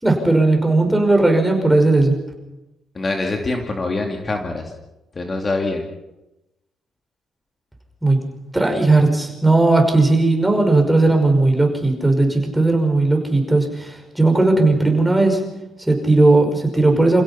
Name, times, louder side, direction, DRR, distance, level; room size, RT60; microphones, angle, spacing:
voice 1, 0.0-2.1 8.0-8.2 8.5-15.4 15.8-17.2, right 2 dB, 5° right, 2 dB, 5.6 m, -16 dB
voice 2, 2.9-4.7 5.2-5.9, left 2 dB, 30° left, 3 dB, 2.5 m, -24 dB
28.0 x 16.5 x 5.8 m, 0.96 s
cardioid pair, 90°, 0 cm